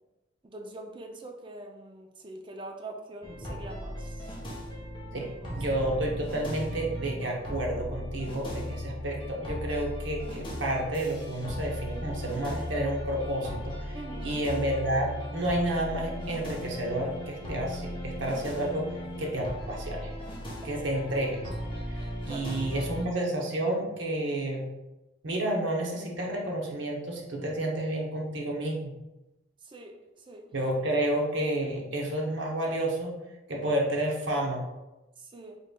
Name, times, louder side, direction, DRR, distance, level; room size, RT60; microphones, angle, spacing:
voice 1, 0.4-4.4 5.1-5.3 13.9-14.4 20.6-20.8 22.1-22.9 29.6-30.5 35.2-35.6, right 2 dB, 25° right, 3 dB, 0.4 m, -44 dB
sound 1, 3.2-23.0, equal, 25° left, 0.8 m, -37 dB
voice 2, 5.5-14.0 14.2-20.1 20.6-21.4 21.9-24.7 25.2-28.9 30.5-33.2 33.5-34.6, right 1 dB, 75° right, -1 dB, 0.8 m, -30 dB
5.1 x 3.0 x 2.2 m, 1.0 s
head